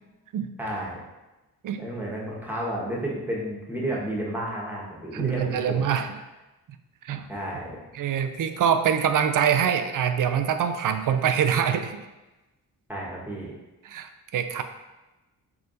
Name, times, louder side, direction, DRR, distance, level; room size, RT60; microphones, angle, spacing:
voice 1, 0.6-1.0 1.8-5.8 7.3-7.9 12.9-13.5, right 1 dB, 5° right, -4 dB, 1.5 m, -32 dB
voice 2, 5.1-6.1 7.0-7.2 7.9-12.0 13.8-14.6, right 8 dB, 50° right, 9 dB, 0.5 m, -24 dB
4.5 x 3.2 x 2.7 m, 1.1 s
supercardioid pair, 45°, 42 cm